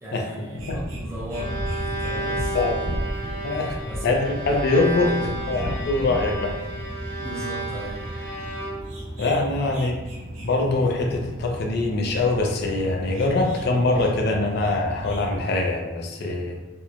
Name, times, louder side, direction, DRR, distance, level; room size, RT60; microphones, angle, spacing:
voice 1, 0.0-2.9 3.5-4.1 4.5-5.5 7.2-8.1 9.6-9.8 16.2-16.3, right 1 dB, 15° right, -6 dB, 0.5 m, -38 dB
sound 1, 0.5-15.5, equal, 85° right, 0.8 m, -34 dB
Bowed string instrument, 1.3-9.1, right 2 dB, 75° left, 1.4 m, -32 dB
voice 2, 3.4-3.8 4.0-5.1 5.5-6.6 9.2-9.9 10.4-16.6, left 2 dB, 60° left, 2 dB, 0.4 m, -23 dB
2.9 x 2.0 x 2.4 m, 1.1 s
head